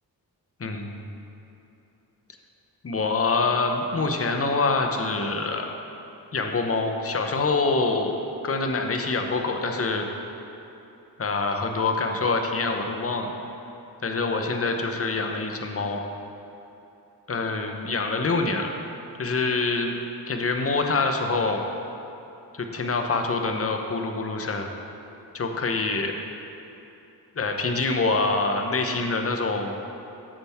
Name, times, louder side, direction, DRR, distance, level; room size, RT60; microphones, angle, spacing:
voice 1, 0.6-1.1 2.8-5.7 6.3-8.2 8.4-10.1 11.2-13.3 14.0-16.0 17.3-18.7 19.2-19.9 20.3-21.6 22.5-24.7 25.3-26.1 27.4-29.7, left 3 dB, 35° left, 4 dB, 0.8 m, -25 dB
8.7 x 6.9 x 3.5 m, 2.9 s
cardioid pair, 75°, 39 cm